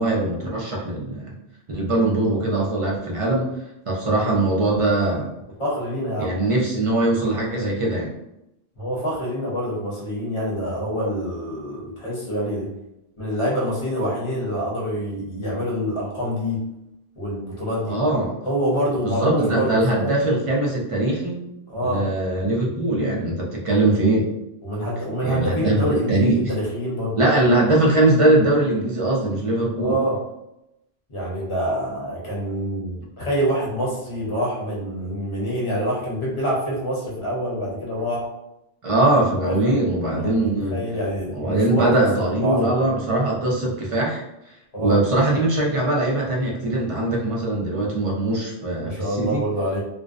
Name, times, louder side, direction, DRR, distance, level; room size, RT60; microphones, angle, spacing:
voice 1, 0.0-1.3 1.7-3.6 3.9-5.3 6.2-8.1 17.9-18.3 19.0-21.5 21.8-24.3 25.2-26.4 27.2-30.0 38.8-40.8 41.3-44.2 44.8-49.5, right 2 dB, 40° right, -3 dB, 0.5 m, -21 dB
voice 2, 5.6-6.3 8.8-12.7 13.2-16.6 17.2-18.0 18.4-20.1 21.7-22.0 24.6-27.2 29.8-30.2 31.1-38.3 39.4-42.7 44.7-45.0 48.8-49.8, equal, 30° left, -5 dB, 0.8 m, -26 dB
2.5 x 2.1 x 2.4 m, 0.87 s
omnidirectional pair, 1.0 m